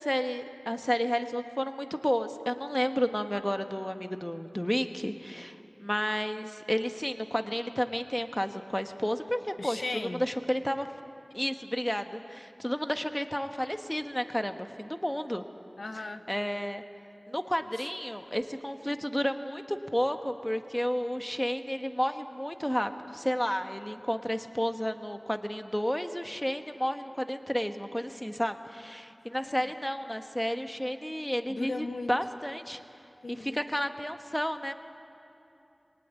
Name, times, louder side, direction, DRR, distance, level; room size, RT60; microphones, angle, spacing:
voice 1, 0.0-10.9 11.3-15.4 16.3-16.8 17.3-32.8 33.3-34.7, equal, 10° left, 7 dB, 1.3 m, -31 dB
voice 2, 9.6-10.2 15.8-16.2 17.7-17.9 29.3-29.7 31.5-32.1 33.2-33.6, left 3 dB, 85° left, 8 dB, 1.0 m, -37 dB
24.5 x 18.5 x 8.3 m, 2.9 s
wide cardioid pair, 40°, 0 cm